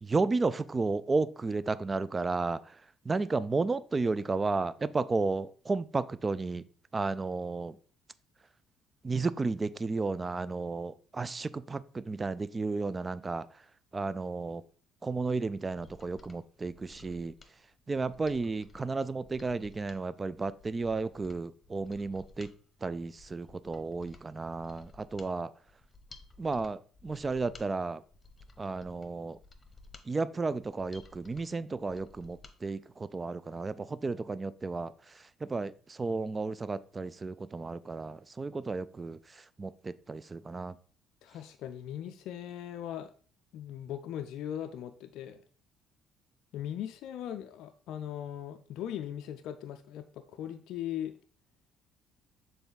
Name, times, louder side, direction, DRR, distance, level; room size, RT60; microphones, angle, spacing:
voice 1, 0.0-6.6 6.9-7.8 9.0-13.5 13.9-14.6 15.0-17.3 17.9-22.5 22.8-25.5 26.4-28.0 28.6-29.4 30.1-40.7, right 3 dB, 30° right, 0.4 m, -33 dB
Mechanisms, 15.5-32.6 32.9-33.0, left 3 dB, 30° left, 1.0 m, -56 dB
voice 2, 41.2-43.1 43.5-45.4 46.5-51.1, left 10 dB, 65° left, 0.4 m, -39 dB
6.8 x 3.8 x 3.9 m
hypercardioid pair, 50°, 0 cm